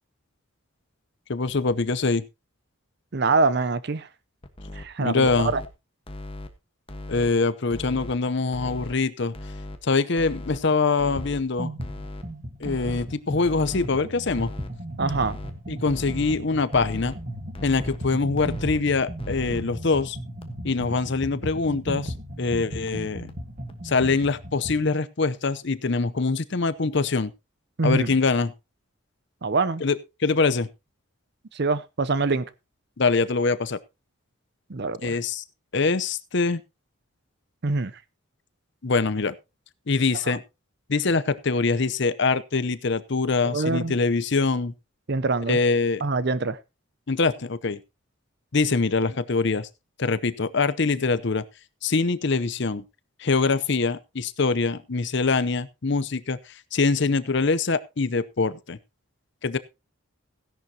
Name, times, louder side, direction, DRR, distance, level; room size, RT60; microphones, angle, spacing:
voice 1, 1.3-2.2 5.0-5.5 7.1-9.3 9.8-11.7 12.6-14.5 15.7-17.1 17.6-20.2 20.6-23.3 23.8-27.3 27.8-28.5 29.8-30.7 33.0-33.8 35.0-35.4 35.7-36.6 38.8-39.3 39.9-40.4 40.9-44.7 45.5-46.0 47.1-47.8 48.5-49.7 50.0-51.4 51.8-52.8 53.2-56.4 56.7-58.8 59.4-59.6, left 4 dB, 55° left, 0.7 m, -24 dB
voice 2, 3.1-4.1 4.8-5.6 15.0-15.4 27.8-28.2 29.4-29.8 31.5-32.5 34.7-35.2 37.6-37.9 40.2-40.4 43.4-44.0 45.1-45.6 46.0-46.6, right 3 dB, 50° right, 0.6 m, -25 dB
sound 1, 4.4-4.8 5.2-5.7 6.1-6.5 6.9-7.3 7.7-8.1 8.5-8.9 9.3-9.8 10.2-10.6 11.0-11.4 11.8-12.2 12.6-13.1 13.4-13.9 14.3-14.7 15.1-15.5 15.9-16.3 16.7-17.2 17.5-18.0 18.4-18.8 19.2-19.6 20.0-20.1 20.4-20.5 20.8-20.9 21.2-21.3 21.6-21.7 22.0-22.1 22.5-22.6 22.9-23.0 23.3-23.4 23.7-23.8, left 1 dB, 25° left, 1.3 m, -38 dB
sound 2, 11.2-11.3 11.6-24.9, right 1 dB, 35° right, 1.6 m, -36 dB
16.0 x 11.0 x 2.8 m
head